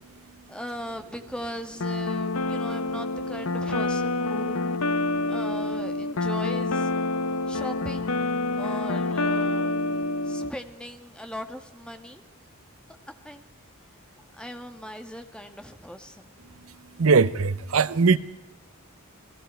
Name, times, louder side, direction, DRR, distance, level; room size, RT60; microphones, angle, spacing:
voice 1, 0.5-4.6 5.2-6.9 7.5-8.1 8.6-9.7 10.2-12.2 13.2-13.5 14.4-16.5, equal, 5° left, 1.6 m, -38 dB
sound 1, 1.8-10.5, left 2 dB, 70° left, 0.9 m, -27 dB
voice 2, 17.0-18.2, right 4 dB, 70° right, 0.7 m, -20 dB
29.5 x 20.5 x 4.5 m
head